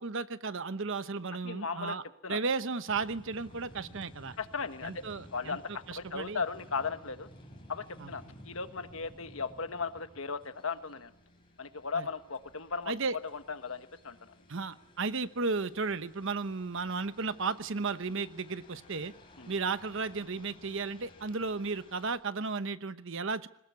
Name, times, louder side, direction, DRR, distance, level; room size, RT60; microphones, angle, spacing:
voice 1, 0.0-2.0 2.3-4.4 4.8-6.4 8.0-8.1 11.9-12.1 12.9-13.2 14.5-19.1 19.5-23.5, right 4 dB, 65° right, 13 dB, 1.0 m, -34 dB
voice 2, 1.4-2.0 2.2-2.4 4.4-5.0 5.3-7.3 7.7-11.1 11.6-12.9 13.3-14.2 19.4-19.5, left 5 dB, 75° left, 9 dB, 1.5 m, -36 dB
sound 1, 2.9-22.2, left 1 dB, 25° left, 6.7 m, -55 dB
21.5 x 19.5 x 9.6 m, 0.77 s
head